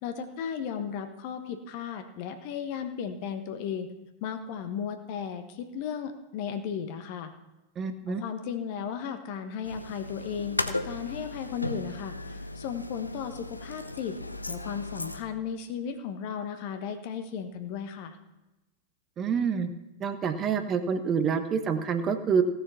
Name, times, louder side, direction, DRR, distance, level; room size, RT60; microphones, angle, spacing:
voice 1, 0.0-3.9 4.2-7.3 8.1-14.2 14.5-18.2, left 7 dB, 45° left, 8 dB, 1.2 m, -35 dB
voice 2, 7.8-8.2 19.2-19.7 20.0-22.4, right 6 dB, 30° right, 8 dB, 1.1 m, -27 dB
sound 1, 9.6-15.2, left 2 dB, 85° left, 0.6 m, -36 dB
16.5 x 6.9 x 5.7 m, 1.0 s
figure-of-eight pair, 90°, 0 cm